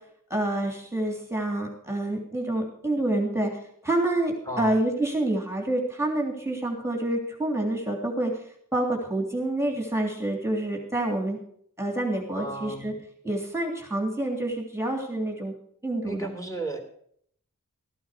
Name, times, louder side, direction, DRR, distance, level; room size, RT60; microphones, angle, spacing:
voice 1, 0.3-3.5 3.8-8.4 8.7-11.4 11.8-12.9 13.2-15.5 15.8-16.2, right 1 dB, 10° right, 1 dB, 3.1 m, -27 dB
voice 2, 4.5-4.8 12.3-13.0 16.0-16.8, right 2 dB, 10° left, 3 dB, 3.6 m, -34 dB
13.5 x 11.5 x 5.1 m, 0.64 s
wide cardioid pair, 55°, 31 cm